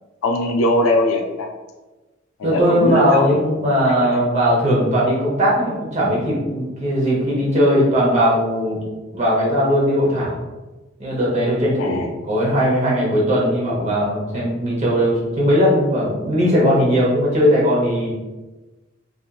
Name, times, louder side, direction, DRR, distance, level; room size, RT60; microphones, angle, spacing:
voice 1, 0.2-1.5 2.4-3.4 3.9-4.2 11.8-12.1 13.5-13.6 16.8-16.9, left 1 dB, 85° left, 2 dB, 0.3 m, -21 dB
voice 2, 2.4-8.8 9.1-10.3 11.0-18.1, equal, 35° right, -5 dB, 0.8 m, -18 dB
2.7 x 2.5 x 2.3 m, 1.2 s
head